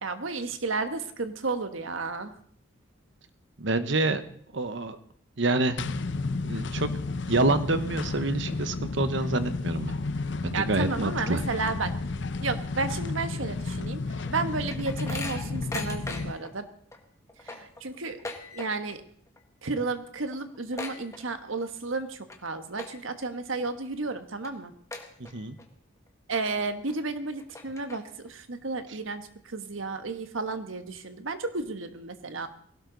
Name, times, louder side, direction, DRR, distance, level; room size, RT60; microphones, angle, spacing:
voice 1, 0.0-2.3 10.5-11.9 12.4-14.0 14.3-16.7 17.5-18.2 18.5-19.0 19.6-24.7 26.3-28.0 28.3-29.2 29.5-32.5, right 3 dB, 80° right, 9 dB, 1.4 m, -32 dB
voice 2, 3.6-4.2 4.5-5.0 5.4-5.8 6.4-6.9 7.3-9.9 10.4-11.4 25.2-25.6 28.9-29.0, right 2 dB, 65° right, 11 dB, 1.1 m, -27 dB
sound 1, 5.8-16.3, left 3 dB, 60° left, 0.7 m, -32 dB
sound 2, 14.1-16.5 16.9-17.0 17.3-19.0 19.3-19.6 19.9-20.0 20.3-21.7 22.1-22.4 22.7-23.2 23.7-23.8 24.4-24.5 24.9-25.6 26.1-26.2 26.9-27.0 27.4-28.3, left 3 dB, 15° left, 1.5 m, -39 dB
19.5 x 17.0 x 4.0 m, 0.62 s
head